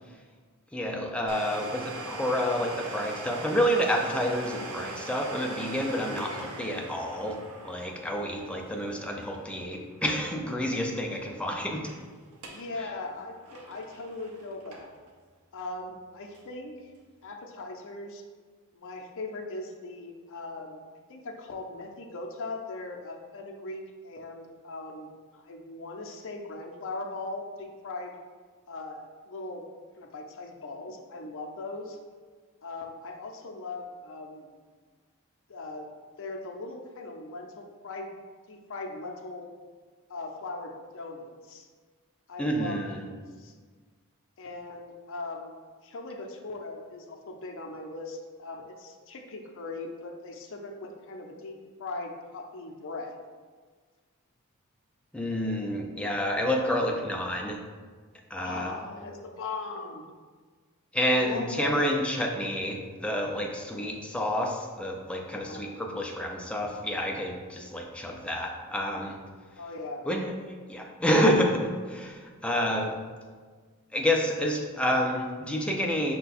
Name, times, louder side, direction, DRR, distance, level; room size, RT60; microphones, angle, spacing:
voice 1, 0.7-7.4 7.6-11.9 42.4-43.0 55.1-57.6 58.3-58.7 60.9-69.2 70.0-70.3 70.7-73.0 73.9-76.2, equal, 5° left, 1 dB, 0.4 m, -29 dB
Domestic sounds home sounds, 1.3-10.7 11.0-11.1 11.6-12.0 12.3-12.7 13.0-15.1 15.6-15.7 16.3-16.4, right 2 dB, 80° right, 0.6 m, -41 dB
voice 2, 5.9-6.6 12.5-14.9 15.5-16.9 17.2-18.2 18.7-20.8 21.1-28.2 28.7-29.6 30.0-32.0 32.6-34.5 35.5-35.9 36.2-38.1 38.5-39.5 40.1-41.7 42.3-42.8 43.4-43.5 44.4-45.6 45.8-53.2 58.4-60.0 61.0-61.8 65.3-65.8 69.6-70.1, left 2 dB, 60° left, 3 dB, 0.6 m, -39 dB
5.5 x 2.2 x 4.1 m, 1.5 s
head